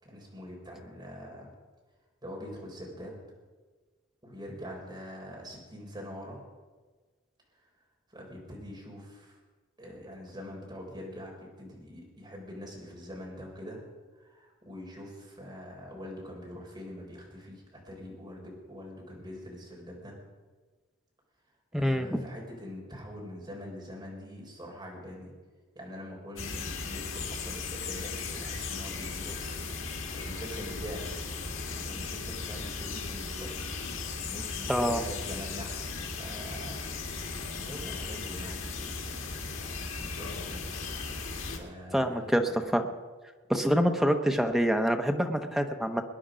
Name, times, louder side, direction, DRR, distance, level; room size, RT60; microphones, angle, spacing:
voice 1, 0.0-1.5 2.2-3.1 4.2-6.4 8.1-9.4 9.8-13.8 14.1-20.2 21.8-25.3 25.7-31.2 31.7-36.8 37.5-40.6 41.6-42.6, equal, 20° right, -2 dB, 4.2 m, -44 dB
voice 2, 21.7-22.2 34.7-35.0 41.9-42.9 43.5-46.0, equal, ahead, 5 dB, 0.9 m, -26 dB
sound 1, 26.4-41.6, left 4 dB, 85° left, 2.0 m, -37 dB
21.0 x 10.0 x 5.1 m, 1.4 s
head